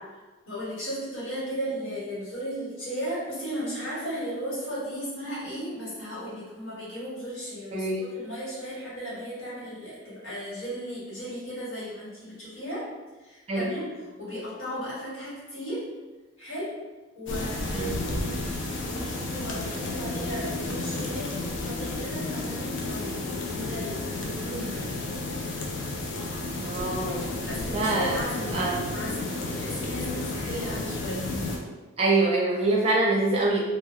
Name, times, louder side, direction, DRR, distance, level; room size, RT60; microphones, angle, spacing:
voice 1, 0.4-12.9 13.2-13.9 14.2-15.8 16.4-16.7 17.1-18.5 18.8-23.2 23.5-24.9 27.1-31.2, equal, 80° left, -9 dB, 1.5 m, -35 dB
voice 2, 7.7-8.0 13.5-13.8 17.7-18.0 26.6-27.2 27.7-28.2 28.5-28.8 32.0-33.6, right 2 dB, 30° right, -3 dB, 0.5 m, -25 dB
sound 1, 17.3-31.6, left 2 dB, 65° left, 0.4 m, -32 dB
2.2 x 2.2 x 3.4 m, 1.2 s
head